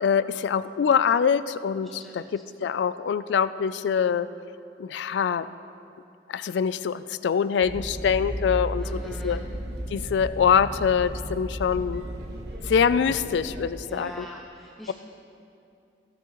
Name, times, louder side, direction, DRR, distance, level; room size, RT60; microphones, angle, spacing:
voice 1, 0.0-4.3 4.8-5.4 6.3-9.4 9.9-12.0 12.7-14.3, left 7 dB, 70° left, 14 dB, 0.3 m, -24 dB
voice 2, 1.8-2.3 8.8-9.4 13.9-14.9, equal, ahead, -2 dB, 0.4 m, -42 dB
sound 1, 7.6-13.7, right 1 dB, 60° right, 1.1 m, -34 dB
15.0 x 9.3 x 3.0 m, 2.6 s
head